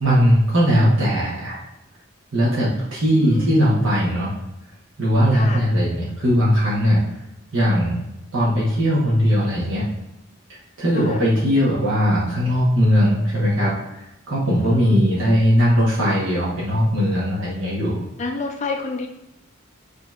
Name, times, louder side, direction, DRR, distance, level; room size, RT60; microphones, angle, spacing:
voice 1, 0.0-1.6 2.3-4.3 5.0-7.0 7.5-8.0 8.3-9.8 10.8-18.0, equal, 75° right, -7 dB, 1.1 m, -19 dB
voice 2, 3.1-3.6 5.3-5.6 10.9-11.2 14.6-15.1 18.2-19.1, left 3 dB, 35° left, 3 dB, 0.4 m, -29 dB
5.1 x 2.8 x 2.4 m, 0.91 s
head